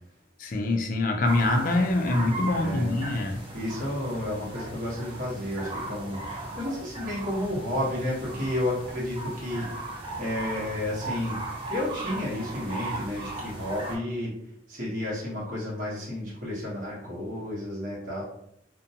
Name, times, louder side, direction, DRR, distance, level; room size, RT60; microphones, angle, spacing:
voice 1, 0.4-3.4, left 2 dB, 45° left, 5 dB, 0.3 m, -25 dB
sound 1, 1.2-14.0, right 2 dB, 25° right, 0.5 m, -37 dB
voice 2, 2.6-2.9 3.5-11.4 11.7-14.3 14.7-18.2, left 1 dB, 45° right, -8 dB, 0.9 m, -31 dB
2.5 x 2.1 x 2.6 m, 0.75 s
head